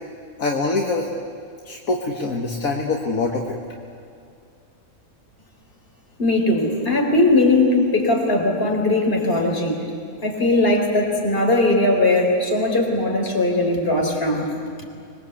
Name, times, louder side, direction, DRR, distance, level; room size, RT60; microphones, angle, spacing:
voice 1, 0.4-1.1 1.7-3.6, left 3 dB, 70° left, 0 dB, 2.0 m, -24 dB
voice 2, 6.2-9.9 10.2-14.5, left 2 dB, 40° left, 0 dB, 4.4 m, -19 dB
25.5 x 22.0 x 8.3 m, 2.4 s
omnidirectional pair, 1.5 m